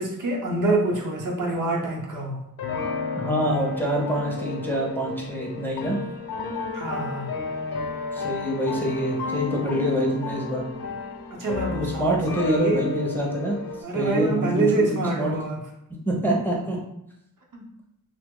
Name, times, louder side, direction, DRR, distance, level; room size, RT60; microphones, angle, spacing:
voice 1, 0.0-2.4 6.7-7.3 11.3-12.8 13.8-15.6 16.6-16.7 17.5-17.7, right 2 dB, 60° right, -1 dB, 0.7 m, -26 dB
sound 1, 2.6-13.8, left 4 dB, 75° left, 0.6 m, -32 dB
voice 2, 3.2-6.0 8.1-10.7 11.7-13.6 13.9-15.4 16.1-16.8, right 1 dB, 5° left, -3 dB, 0.4 m, -26 dB
3.0 x 2.0 x 3.5 m, 0.80 s
wide cardioid pair, 150°, 35 cm